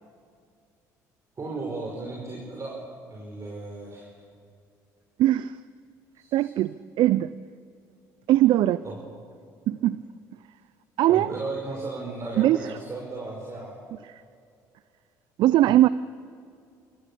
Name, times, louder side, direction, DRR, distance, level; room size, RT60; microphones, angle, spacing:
voice 1, 1.4-4.1 6.2-6.5 8.8-9.0 11.1-13.8, right 3 dB, 35° right, -2 dB, 5.1 m, -35 dB
voice 2, 5.2-5.6 6.3-7.3 8.3-8.8 9.7-10.0 11.0-11.3 12.4-12.8 14.1-14.2 15.4-15.9, right 14 dB, 60° right, 17 dB, 0.5 m, -21 dB
29.5 x 15.0 x 7.0 m, 2.3 s
hypercardioid pair, 60°, 9 cm